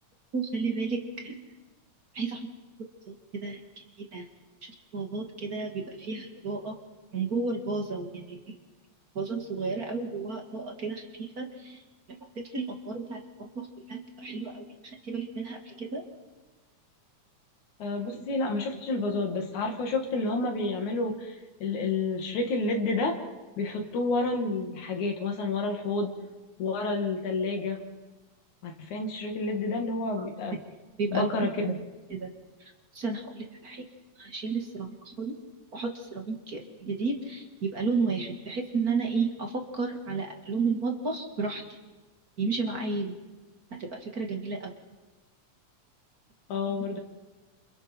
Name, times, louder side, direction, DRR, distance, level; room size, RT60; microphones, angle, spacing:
voice 1, 0.3-1.4 2.1-2.5 3.1-3.2 3.4-3.6 4.1-4.3 4.9-6.8 7.1-8.5 9.2-11.8 12.4-14.6 15.0-16.0 30.2-30.3 31.0-31.3 31.7-31.8 32.1-32.3 33.0-33.8 34.2-35.3 35.7-41.6 42.4-43.2 43.7-44.7, right 4 dB, 35° right, 2 dB, 2.2 m, -32 dB
voice 2, 17.8-23.2 23.6-26.1 26.6-27.8 28.6-30.6 31.1-31.8 46.5-47.0, left 3 dB, 85° left, 3 dB, 3.7 m, -29 dB
29.5 x 28.0 x 4.5 m, 1.2 s
omnidirectional pair, 3.3 m